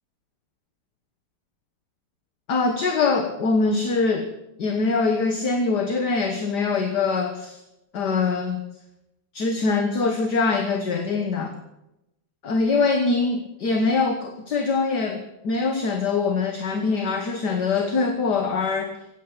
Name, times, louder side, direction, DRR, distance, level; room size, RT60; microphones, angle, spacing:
voice 1, 2.5-4.3 4.6-7.6 7.9-8.6 9.3-11.6 12.4-19.0, left 4 dB, 55° left, 5 dB, 1.9 m, -23 dB
16.0 x 9.7 x 8.8 m, 0.88 s
omnidirectional pair, 2.2 m